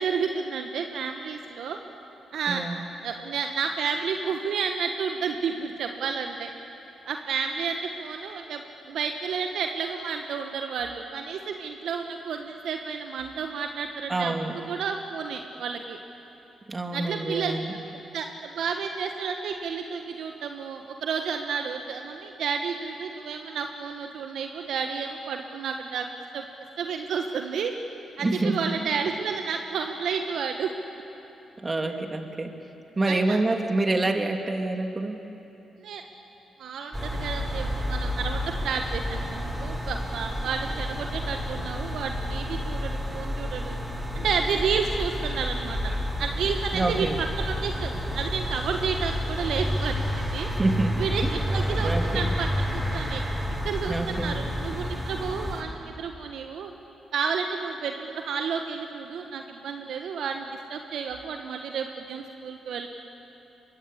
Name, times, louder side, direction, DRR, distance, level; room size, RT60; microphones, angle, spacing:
voice 1, 0.0-1.8 2.3-2.6 3.0-6.5 7.0-14.3 14.7-16.0 16.9-17.8 18.1-26.4 26.8-27.7 28.2-30.7 31.9-32.0 33.1-33.4 35.8-36.0 36.6-43.8 44.1-45.9 46.2-50.5 51.0-53.2 53.5-56.7 57.1-62.9, right 6 dB, 70° right, 4 dB, 1.3 m, -31 dB
voice 2, 2.5-2.8 14.1-14.5 16.7-17.7 28.2-28.6 31.6-32.5 33.0-35.2 46.7-47.2 50.6-51.3 51.8-52.3 53.9-54.4, right 2 dB, 30° right, 4 dB, 2.7 m, -27 dB
sound 1, 36.9-55.6, equal, 15° right, 7.7 m, -30 dB
23.5 x 22.5 x 8.6 m, 3.0 s
hypercardioid pair, 45°, 0 cm